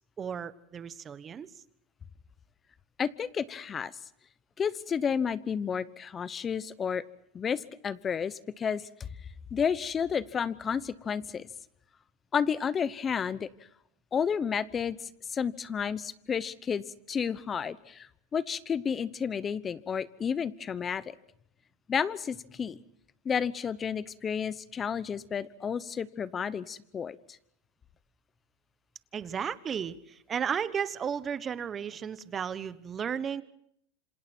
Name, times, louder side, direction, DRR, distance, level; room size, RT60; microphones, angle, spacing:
voice 1, 0.2-1.5 29.1-33.4, right 7 dB, 25° right, 14 dB, 1.1 m, -34 dB
voice 2, 3.0-3.9 4.6-7.0 7.3-9.1 9.5-11.5 12.3-13.5 14.1-15.0 15.3-21.1 21.9-22.8 23.2-27.2, left 7 dB, 25° left, 17 dB, 0.9 m, -31 dB
27.0 x 27.0 x 4.5 m, 0.70 s
supercardioid pair, 130°, 0 cm